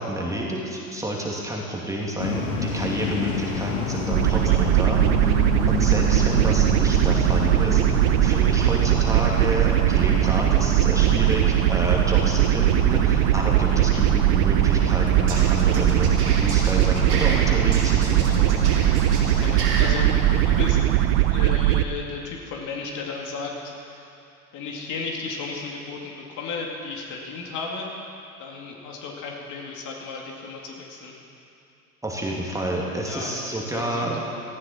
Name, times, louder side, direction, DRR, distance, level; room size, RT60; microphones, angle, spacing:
voice 1, 0.0-18.5 32.0-34.2, right 1 dB, 5° right, -2 dB, 2.5 m, -29 dB
sound 1, 2.2-21.7, left 4 dB, 70° left, 2.3 m, -30 dB
sound 2, 4.1-21.8, right 14 dB, 50° right, 0.8 m, -20 dB
voice 2, 13.7-14.0 19.3-20.1 20.4-20.8 21.3-24.1 24.5-27.9 28.4-31.2 33.0-34.1, left 4 dB, 40° left, -1 dB, 2.5 m, -34 dB
sound 3, 15.1-17.4 17.7-19.8, right 4 dB, 80° right, 3.3 m, -33 dB
18.0 x 14.5 x 4.4 m, 2.7 s
figure-of-eight pair, 85°, 45 cm